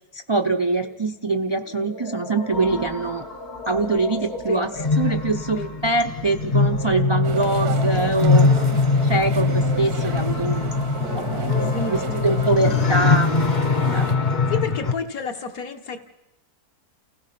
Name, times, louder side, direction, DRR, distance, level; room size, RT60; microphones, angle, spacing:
voice 1, 0.1-3.2 3.7-8.5 9.0-10.7 11.1-13.4 13.8-14.3, right 3 dB, 40° right, 4 dB, 0.4 m, -24 dB
sound 1, 0.8-14.4, left 1 dB, 85° left, 3.4 m, -37 dB
sound 2, 2.5-14.9, left 4 dB, 35° left, 1.0 m, -22 dB
voice 2, 4.5-4.9 5.6-5.7 11.7-12.4 14.5-16.0, left 5 dB, 65° left, 7 dB, 1.9 m, -30 dB
sound 3, 7.2-14.2, right 7 dB, 75° right, 1.5 m, -33 dB
29.5 x 16.5 x 5.9 m, 0.90 s
omnidirectional pair, 1.6 m